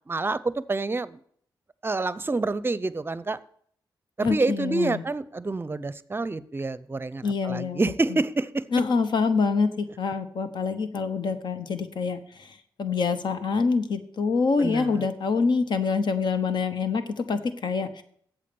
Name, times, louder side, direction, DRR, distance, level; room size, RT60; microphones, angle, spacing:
voice 1, 0.1-1.2 1.8-3.4 4.2-8.7 14.6-15.1, right 3 dB, 30° right, 16 dB, 0.6 m, -28 dB
voice 2, 4.2-5.0 7.2-7.8 8.7-12.5 12.8-18.0, left 4 dB, 70° left, 10 dB, 1.0 m, -26 dB
8.4 x 7.3 x 7.0 m, 0.64 s
cardioid pair, 70°, 8 cm